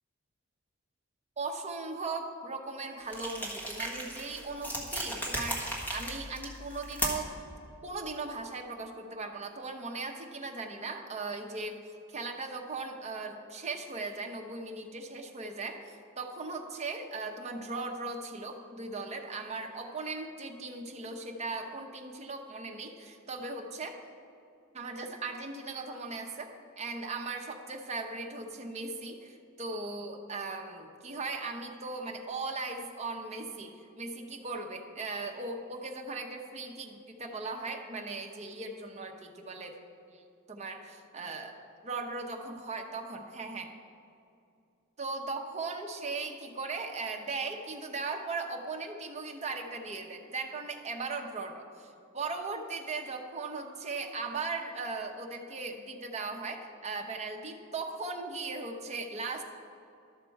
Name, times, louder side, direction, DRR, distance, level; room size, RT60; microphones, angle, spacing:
voice 1, 1.4-7.3 7.8-24.0 24.7-39.8 40.1-41.5 41.8-43.7 45.0-59.4, right 3 dB, 30° right, 3 dB, 0.8 m, -38 dB
sound 1, 3.1-7.4, equal, 10° left, 1.4 m, -36 dB
12.5 x 6.6 x 4.6 m, 2.5 s
head